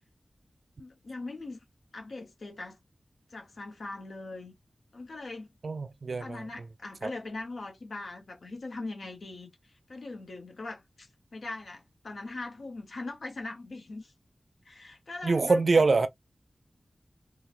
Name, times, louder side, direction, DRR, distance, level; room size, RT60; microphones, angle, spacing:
voice 1, 0.8-1.6 1.9-2.8 3.3-4.5 4.9-5.5 6.2-9.5 9.9-14.1 14.6-15.8, left 2 dB, 80° left, 1.1 m, -41 dB
voice 2, 5.6-6.5 7.0-7.1 15.2-16.1, right 3 dB, 65° right, 0.4 m, -24 dB
3.9 x 2.4 x 2.6 m
wide cardioid pair, 90°, 0 cm